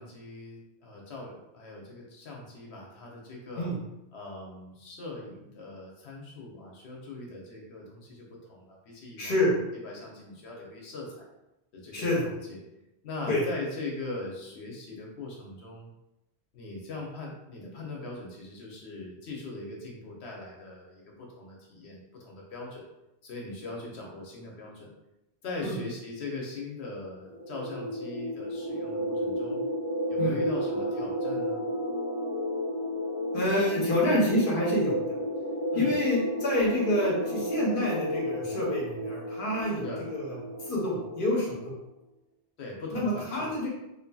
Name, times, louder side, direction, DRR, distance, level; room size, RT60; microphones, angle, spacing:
voice 1, 0.0-3.7 4.1-9.5 9.8-11.3 11.7-12.6 13.0-15.9 16.5-22.9 23.2-24.9 25.4-29.6 30.1-31.6 35.7-36.0 39.7-40.1 42.6-43.5, left 2 dB, 75° left, -1 dB, 1.0 m, -40 dB
voice 2, 9.2-9.5 11.9-12.2 13.3-13.4 25.6-25.7 30.2-30.4 33.3-35.0 35.8-39.8 40.1-40.4 40.6-41.7 42.9-43.7, left 1 dB, 55° left, -4 dB, 0.9 m, -27 dB
sound 1, 27.3-41.6, equal, 55° right, 0.7 m, -32 dB
2.6 x 2.5 x 2.2 m, 0.91 s
omnidirectional pair, 1.1 m